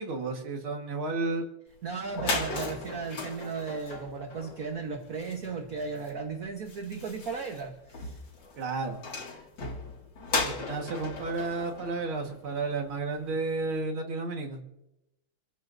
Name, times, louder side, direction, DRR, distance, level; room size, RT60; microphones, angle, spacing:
voice 1, 0.0-1.5 8.6-9.0 10.4-14.6, right 3 dB, 70° right, 2 dB, 2.6 m, -32 dB
sound 1, 1.8-1.9 2.1-12.9, left 3 dB, 60° left, 3.0 m, -37 dB
voice 2, 1.8-8.2, right 5 dB, 45° right, 3 dB, 1.6 m, -36 dB
30.0 x 14.5 x 2.7 m, 0.89 s
omnidirectional pair, 2.4 m